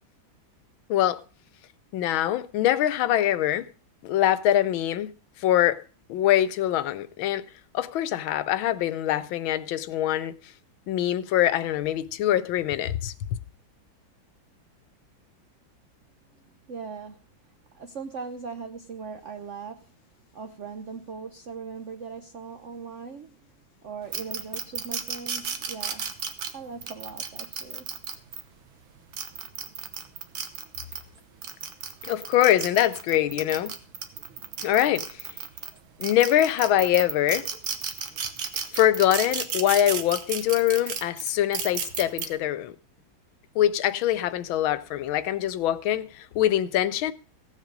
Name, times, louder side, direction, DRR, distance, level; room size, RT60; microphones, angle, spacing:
voice 1, 0.9-1.2 1.9-3.7 4.0-5.1 5.4-5.8 6.1-7.5 7.7-10.4 10.9-13.1 32.0-33.7 34.6-35.3 36.0-37.5 38.7-42.7 43.5-47.1, left 12 dB, 90° left, 1.5 m, -24 dB
voice 2, 16.7-17.2 17.7-19.9 20.3-23.4 23.8-26.1 26.5-27.9, right 5 dB, 60° right, 0.7 m, -39 dB
sound 1, 24.1-28.4 29.0-31.0 31.4-35.7 36.0-42.3, right 7 dB, 90° right, 2.0 m, -33 dB
16.0 x 7.5 x 5.2 m
omnidirectional pair, 2.1 m